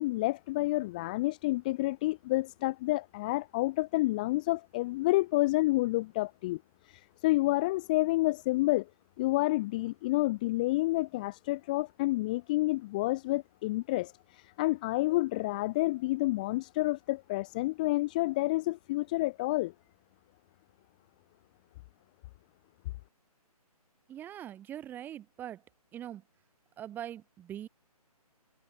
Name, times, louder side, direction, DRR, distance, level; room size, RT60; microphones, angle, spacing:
voice 1, 0.0-8.9 9.2-19.7, left 19 dB, 10° left, 0.6 m, -29 dB
voice 2, 24.1-25.6 25.9-26.2 26.8-27.7, right 11 dB, 10° right, 2.8 m, -42 dB
hypercardioid pair, 160°, 20 cm